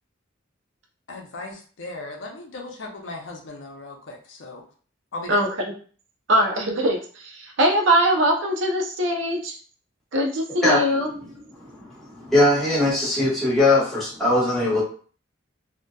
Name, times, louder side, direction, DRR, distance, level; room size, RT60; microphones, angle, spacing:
voice 1, 1.1-4.6 5.1-5.4, left 2 dB, 60° left, 1 dB, 0.5 m, -37 dB
voice 2, 6.3-9.5 10.1-11.1, right 1 dB, 60° right, 1 dB, 0.5 m, -21 dB
voice 3, 10.6-11.2 11.5-14.8, left 2 dB, ahead, -9 dB, 1.0 m, -21 dB
2.7 x 2.1 x 2.2 m, 0.42 s
head